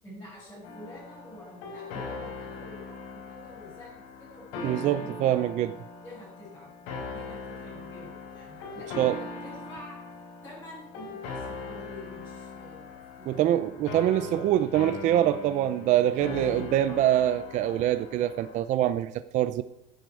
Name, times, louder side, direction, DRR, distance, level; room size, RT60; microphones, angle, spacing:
voice 1, 0.0-5.4 6.0-6.7 7.0-10.0 10.4-13.8 16.3-17.1, left 1 dB, 15° left, -10 dB, 7.0 m, -47 dB
sound 1, 0.6-18.6, left 4 dB, 85° left, 5.3 m, -40 dB
voice 2, 4.6-5.8 9.0-9.2 13.3-19.6, right 12 dB, 40° right, 12 dB, 0.5 m, -25 dB
17.0 x 10.5 x 4.8 m, 0.83 s
cardioid pair, 165°, 19 cm